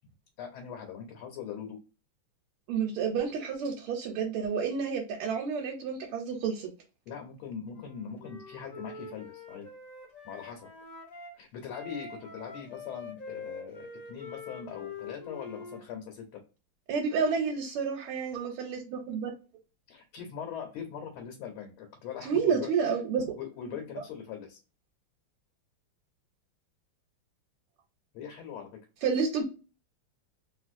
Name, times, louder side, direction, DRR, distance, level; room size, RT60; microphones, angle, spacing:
voice 1, 0.4-1.8 7.1-9.7 10.3-10.7 11.4-16.4 19.9-22.7 23.4-24.6 28.1-28.7, left 8 dB, 80° left, 2 dB, 1.6 m, -41 dB
voice 2, 2.7-6.7 16.9-19.3 22.2-23.4 23.6-24.0 29.0-29.4, right 6 dB, 90° right, 0 dB, 1.6 m, -30 dB
Wind instrument woodwind instrument, 7.7-11.3 11.7-15.8, left 4 dB, 50° left, 0.4 m, -45 dB
3.1 x 2.9 x 2.5 m, 0.33 s
omnidirectional pair, 2.3 m